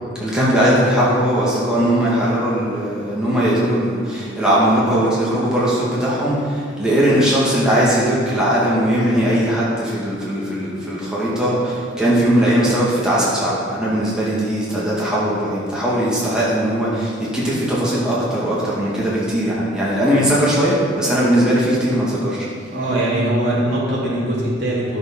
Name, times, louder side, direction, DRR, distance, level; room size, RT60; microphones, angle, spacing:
voice 1, 0.2-22.4, right 1 dB, 5° right, -8 dB, 2.2 m, -19 dB
voice 2, 22.6-25.0, right 1 dB, 60° right, -7 dB, 3.1 m, -21 dB
11.5 x 6.8 x 5.7 m, 2.1 s
head